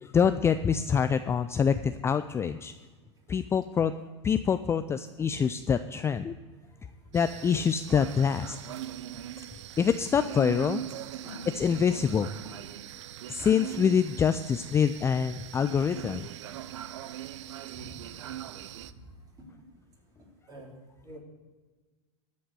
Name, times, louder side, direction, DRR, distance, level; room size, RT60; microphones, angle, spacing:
voice 1, 0.0-2.7 3.3-3.9 4.2-6.4 7.1-8.6 9.8-10.8 11.6-12.3 13.3-16.3, left 7 dB, 15° left, 11 dB, 0.3 m, -25 dB
sound 1, 7.1-18.9, right 12 dB, 75° right, 0.5 m, -41 dB
voice 2, 20.2-20.7 21.0-21.2, equal, 25° right, -2 dB, 4.0 m, -46 dB
13.0 x 5.4 x 8.4 m, 1.3 s
hypercardioid pair, 110°, 15 cm